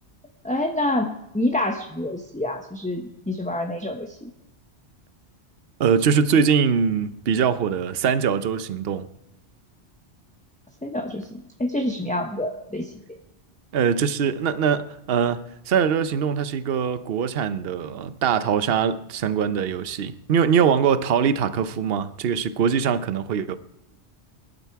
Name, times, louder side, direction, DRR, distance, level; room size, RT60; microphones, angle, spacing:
voice 1, 0.4-4.3 10.8-12.9, left 1 dB, 5° left, 0.8 m, -27 dB
voice 2, 5.8-9.1 13.7-23.6, right 7 dB, 60° right, 0.9 m, -22 dB
20.5 x 12.0 x 4.7 m
omnidirectional pair, 1.2 m